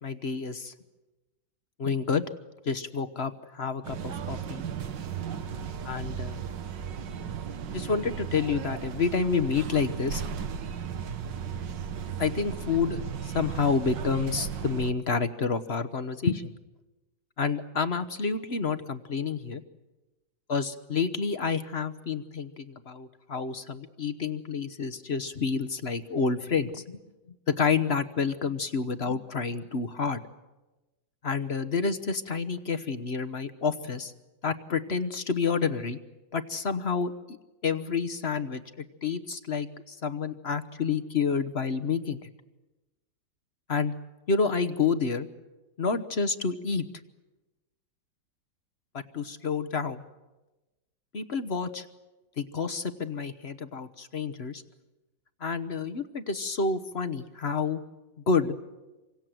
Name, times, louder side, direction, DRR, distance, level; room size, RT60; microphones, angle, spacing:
voice 1, 0.0-0.7 1.8-2.2 2.6-4.6 5.8-6.4 7.7-10.2 12.2-16.5 17.4-19.6 20.5-26.8 27.5-30.2 31.2-34.1 34.4-36.0 36.3-37.1 37.6-42.2 43.7-43.9 44.3-45.3 45.8-46.9 48.9-50.0 51.1-51.9 52.4-54.6 55.4-57.8 58.3-58.5, left 5 dB, 45° left, 10 dB, 1.0 m, -29 dB
sound 1, 3.8-14.9, right 7 dB, 80° right, 1.8 m, -35 dB
28.0 x 24.5 x 7.7 m, 1.1 s
omnidirectional pair, 2.0 m